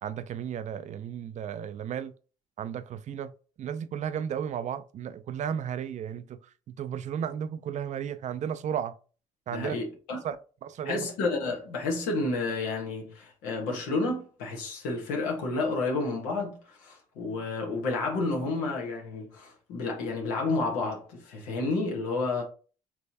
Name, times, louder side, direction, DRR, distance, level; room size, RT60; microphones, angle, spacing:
voice 1, 0.0-2.1 2.6-3.3 3.6-6.4 6.7-8.9 9.5-9.8 10.2-10.4 10.6-11.1, right 8 dB, 55° right, 0.4 m, -34 dB
voice 2, 9.5-10.2 10.8-22.4, left 3 dB, 90° left, 1.0 m, -30 dB
3.5 x 3.0 x 2.7 m
supercardioid pair, 65°, 15 cm